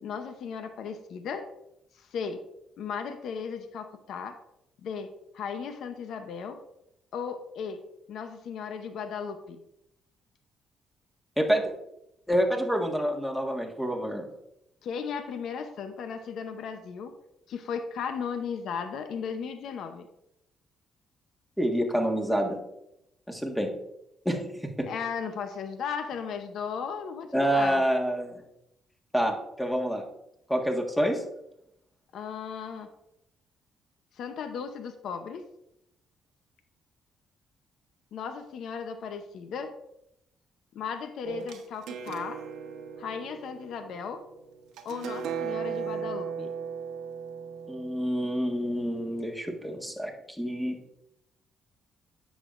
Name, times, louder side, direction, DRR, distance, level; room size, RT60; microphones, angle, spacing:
voice 1, 0.0-1.5 2.0-2.4 2.8-4.4 4.8-6.6 7.1-7.8 8.1-9.6 14.8-17.1 17.5-20.1 24.9-27.8 32.1-32.9 34.2-35.4 38.1-39.7 40.7-42.4 43.0-44.2 44.8-46.5, left 6 dB, 75° left, 8 dB, 0.7 m, -36 dB
voice 2, 11.4-11.7 12.3-14.3 21.6-22.6 23.3-23.7 24.2-24.9 27.3-28.4 29.1-30.0 30.5-31.2 47.7-50.1 50.4-50.8, equal, 5° left, 1 dB, 1.6 m, -27 dB
sound 1, 41.2-49.0, right 7 dB, 90° right, 0.9 m, -37 dB
9.8 x 7.2 x 2.5 m, 0.83 s
cardioid pair, 90°, 0 cm